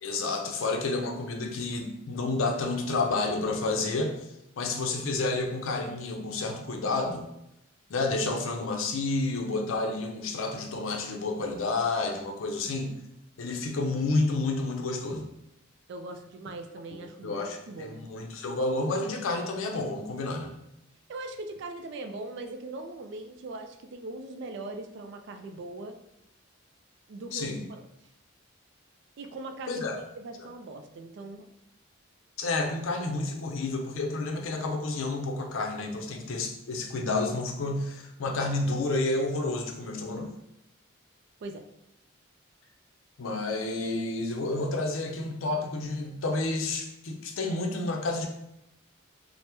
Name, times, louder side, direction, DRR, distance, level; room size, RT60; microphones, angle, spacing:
voice 1, 0.0-4.2 4.6-7.3 7.9-13.0 13.4-15.3 17.2-20.6 27.3-27.6 29.7-30.0 32.4-40.3 43.2-48.3, left 3 dB, 80° left, 3 dB, 0.5 m, -30 dB
voice 2, 15.9-18.0 21.1-26.0 27.1-27.8 29.2-29.9 30.2-31.5 41.4-41.6, right 2 dB, 60° right, 6 dB, 0.3 m, -40 dB
3.3 x 2.0 x 2.9 m, 0.82 s
head